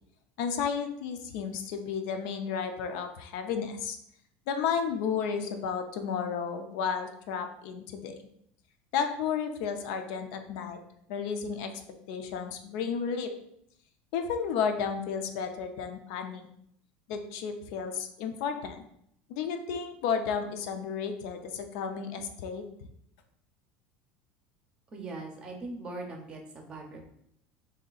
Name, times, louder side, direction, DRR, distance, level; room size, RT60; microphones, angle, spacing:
voice 1, 0.4-4.0 4.5-8.2 8.9-10.8 11.1-11.7 12.1-13.3 14.1-16.5 17.1-18.8 19.3-22.6, left 6 dB, 70° left, 6 dB, 0.5 m, -32 dB
voice 2, 24.9-27.1, right 2 dB, 20° right, 2 dB, 0.6 m, -40 dB
3.2 x 2.7 x 3.9 m, 0.72 s
cardioid pair, 160°, 4 cm